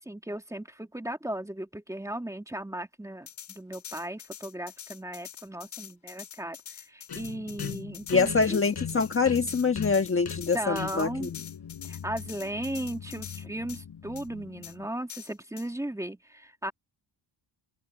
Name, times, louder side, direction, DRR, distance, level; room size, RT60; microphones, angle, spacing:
voice 1, 0.0-8.6 10.5-11.3 11.8-16.7, right 1 dB, 5° right, 2.1 m, -36 dB
sound 1, 3.3-13.4 13.7-13.8 14.2-14.3 14.6-14.7 15.1-15.7, left 10 dB, 70° left, 4.3 m, -45 dB
sound 2, 7.1-14.9, left 7 dB, 50° left, 6.1 m, -40 dB
voice 2, 8.1-11.3, left 4 dB, 25° left, 1.3 m, -25 dB
open air
cardioid pair, 130°, 48 cm